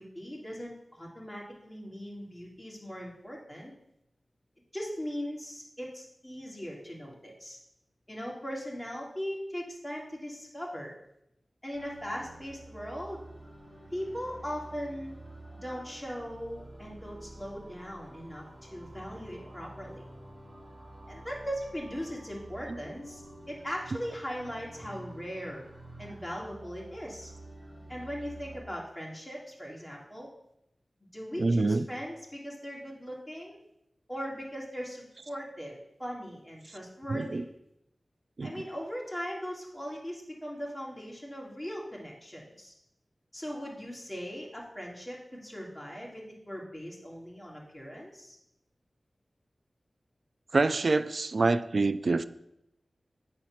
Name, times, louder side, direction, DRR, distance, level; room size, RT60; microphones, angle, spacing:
voice 1, 0.0-3.7 4.7-7.6 8.1-10.9 11.6-13.2 13.9-15.2 15.5-20.1 21.1-25.6 26.0-27.3 27.9-30.3 31.1-33.6 34.1-37.4 38.4-42.7 43.3-48.4, equal, 10° left, -3 dB, 2.5 m, -39 dB
sound 1, 11.7-28.6, right 1 dB, 30° right, 3.3 m, -49 dB
voice 2, 31.4-31.8 37.1-37.4 38.4-38.5 50.5-52.2, right 3 dB, 65° right, 13 dB, 0.3 m, -26 dB
9.0 x 4.4 x 5.8 m, 0.81 s
wide cardioid pair, 60°, 0 cm